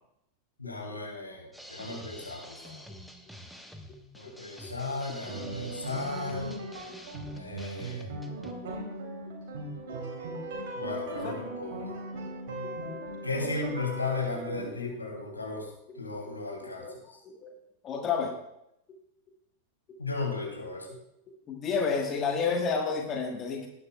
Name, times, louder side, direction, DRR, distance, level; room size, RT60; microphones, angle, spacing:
voice 1, 0.6-2.9 4.1-6.6 7.3-8.2 10.8-11.9 13.2-15.7 15.9-17.2 20.0-20.9, left 3 dB, 80° left, 0 dB, 2.9 m, -35 dB
sound 1, 1.5-8.5, equal, ahead, 1.0 m, -47 dB
sound 2, 5.3-14.7, right 1 dB, 50° right, 3.0 m, -38 dB
voice 2, 17.2-17.5 17.8-18.4 21.5-23.7, left 5 dB, 30° left, 2 dB, 1.4 m, -30 dB
18.0 x 10.0 x 2.3 m, 0.80 s
figure-of-eight pair, 90°, 0 cm